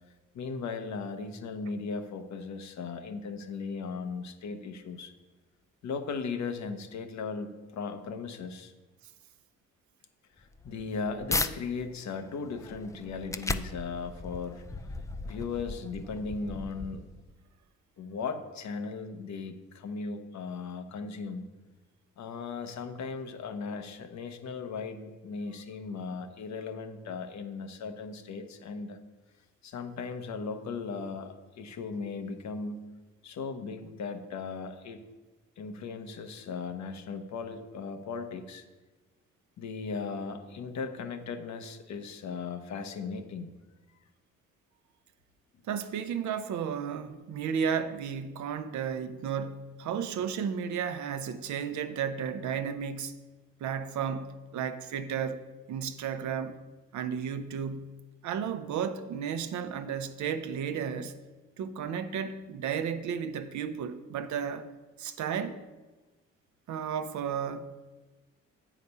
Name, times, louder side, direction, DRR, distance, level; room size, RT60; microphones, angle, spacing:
voice 1, 0.3-5.1 5.8-8.7 10.4-14.6 15.2-17.1 18.0-21.4 22.2-29.0 29.6-32.8 33.2-35.0 35.6-38.6 39.6-43.5, left 4 dB, 65° left, 0.9 m, -37 dB
sound 1, 10.4-11.5 12.1-17.3, left 3 dB, 10° left, 0.3 m, -37 dB
voice 2, 45.7-53.2 53.6-55.4 55.7-56.6 56.9-57.9 58.2-61.2 61.6-64.7 65.0-65.6 66.7-67.8, right 7 dB, 70° right, 0.7 m, -33 dB
8.2 x 5.0 x 5.4 m
cardioid pair, 90°, 30 cm